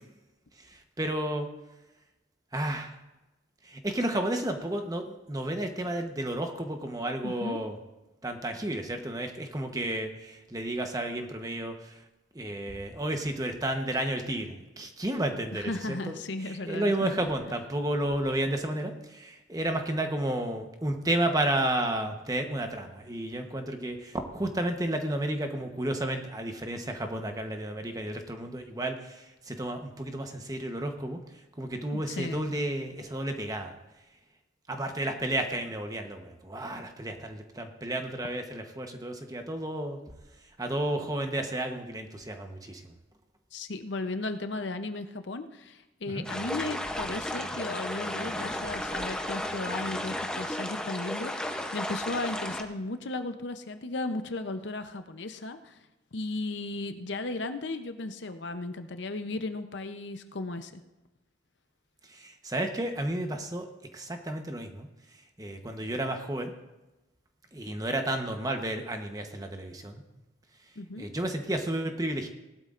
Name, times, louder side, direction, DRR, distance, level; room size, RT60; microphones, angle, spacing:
voice 1, 1.0-1.5 2.5-2.9 3.7-7.7 8.2-11.9 12.3-16.2 16.5-31.2 31.6-33.7 34.7-40.0 40.6-42.8 46.1-46.3 62.1-63.7 63.9-64.9 65.4-66.5 67.5-70.0 71.0-72.3, right 1 dB, 20° right, 5 dB, 1.0 m, -32 dB
voice 2, 7.2-7.6 15.5-17.1 31.9-32.5 43.5-55.8 56.1-60.8 70.8-71.1, left 2 dB, 70° left, 9 dB, 0.7 m, -35 dB
sound 1, 46.2-52.6, left 1 dB, 5° left, 0.7 m, -34 dB
18.5 x 12.0 x 2.5 m, 1.0 s
head